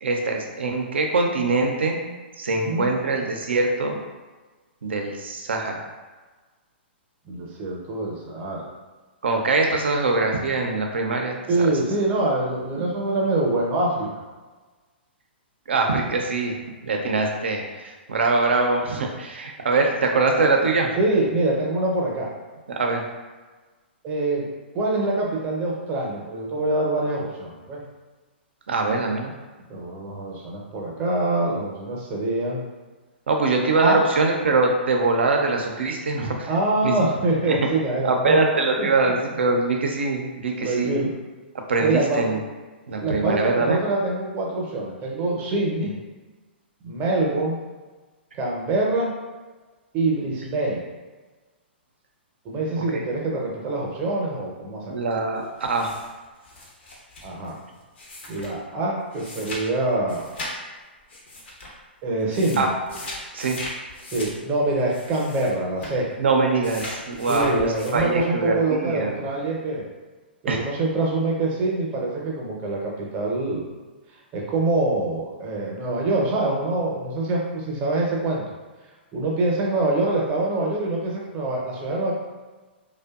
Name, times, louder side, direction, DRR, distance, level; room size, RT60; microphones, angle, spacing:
voice 1, 0.0-2.0 2.4-4.0 4.8-5.9 9.2-11.7 12.8-12.9 15.7-16.6 16.8-20.9 22.7-23.0 28.7-29.3 33.3-36.5 36.8-37.0 37.5-37.6 38.0-41.0 41.7-42.4 42.9-43.8 52.9-53.0 54.9-55.9 62.6-62.7 62.9-63.6 66.2-69.2 70.5-70.6, right 3 dB, 75° right, 2 dB, 0.5 m, -23 dB
voice 2, 2.5-2.9 7.3-8.7 11.5-14.1 21.0-22.3 24.0-24.5 24.7-27.8 29.7-32.6 33.8-34.0 36.5-38.4 38.8-39.1 40.6-41.1 41.8-42.2 43.0-45.9 46.8-47.6 48.4-49.1 49.9-50.8 52.4-55.0 57.2-57.6 58.3-60.3 62.0-62.7 64.1-66.1 67.3-69.9 70.4-73.7 74.3-78.4 79.1-82.1, right 2 dB, 30° right, -2 dB, 0.6 m, -25 dB
sound 1, 55.6-58.6 59.1-59.6 59.9-60.5 61.1-61.8 62.2-65.5 65.8-66.0 66.6-68.2, left 2 dB, 70° left, 0.7 m, -38 dB
2.6 x 2.2 x 2.3 m, 1.3 s
hypercardioid pair, 120°, 6 cm